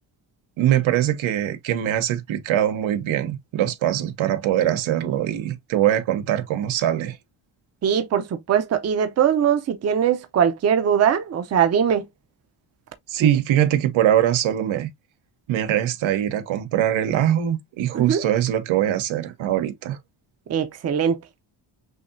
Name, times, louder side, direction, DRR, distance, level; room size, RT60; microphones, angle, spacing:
voice 1, 0.6-7.2 13.1-14.9 15.5-20.0, right 11 dB, 85° right, 1.1 m, -22 dB
voice 2, 7.8-12.1 13.2-13.4 17.9-18.2 20.5-21.2, right 8 dB, 35° right, 0.6 m, -21 dB
6.2 x 2.8 x 2.6 m
cardioid pair, 165°, 46 cm